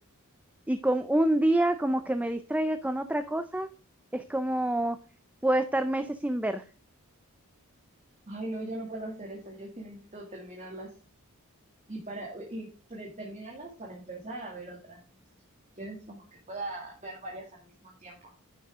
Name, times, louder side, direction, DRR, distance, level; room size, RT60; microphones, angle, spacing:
voice 1, 0.7-3.7 4.1-5.0 5.4-6.6, right 1 dB, 5° right, 9 dB, 0.4 m, -27 dB
voice 2, 8.3-10.9 11.9-15.0 15.8-18.3, right 2 dB, 30° right, -2 dB, 2.2 m, -40 dB
10.5 x 6.5 x 3.6 m, 0.36 s
head